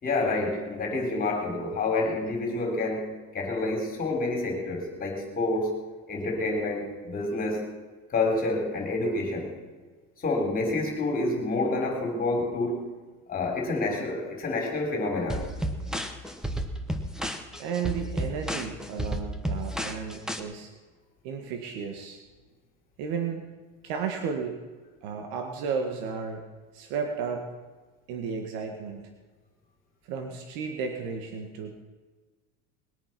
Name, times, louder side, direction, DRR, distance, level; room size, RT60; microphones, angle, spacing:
voice 1, 0.0-5.8 6.1-7.7 8.1-9.5 10.2-12.8 13.3-15.5, left 2 dB, 25° left, 1 dB, 4.1 m, -28 dB
sound 1, 15.3-20.4, right 1 dB, ahead, 1.0 m, -32 dB
voice 2, 17.6-20.7 21.2-22.2 23.0-23.5 23.8-24.6 25.0-26.4 26.7-27.5 28.1-29.1 30.1-31.8, right 6 dB, 75° right, 4 dB, 1.9 m, -33 dB
21.0 x 9.0 x 6.0 m, 1.3 s
cardioid pair, 160°, 36 cm